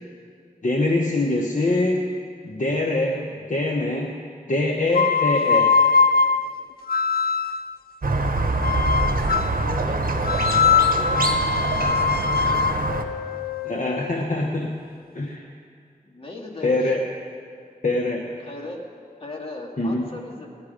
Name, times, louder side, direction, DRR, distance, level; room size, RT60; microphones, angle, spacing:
voice 1, 0.6-2.1 2.4-4.1 4.5-5.8 13.6-14.7 15.1-15.5 16.6-17.0 17.8-18.3 19.8-20.0, left 2 dB, 55° left, 0 dB, 1.1 m, -23 dB
sound 1, 4.9-7.7 8.6-9.6 10.2-14.2, left 5 dB, 80° left, 0.4 m, -22 dB
Squeak, 8.0-13.0, right 2 dB, 70° right, 1.0 m, -24 dB
voice 2, 9.1-11.3 11.7-12.7 16.0-17.0 18.4-18.9 19.2-20.5, left 2 dB, 35° left, -1 dB, 2.3 m, -38 dB
18.5 x 10.0 x 5.1 m, 2.2 s
wide cardioid pair, 60°, 15 cm